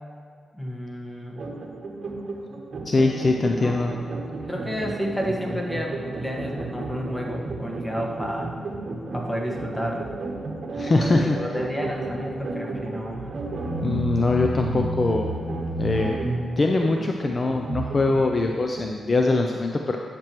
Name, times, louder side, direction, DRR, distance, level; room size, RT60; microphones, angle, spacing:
voice 1, 0.6-1.4 3.4-3.8 4.5-8.5 9.1-10.0 11.1-13.3, equal, 15° left, -1 dB, 1.4 m, -31 dB
sound 1, 1.4-18.9, right 2 dB, 55° right, 0.9 m, -32 dB
voice 2, 2.9-3.9 10.7-11.5 13.8-15.3 15.8-16.2 16.6-20.0, left 3 dB, 40° left, 3 dB, 0.5 m, -22 dB
10.5 x 6.1 x 3.1 m, 2.1 s
cardioid pair, 65°, 0 cm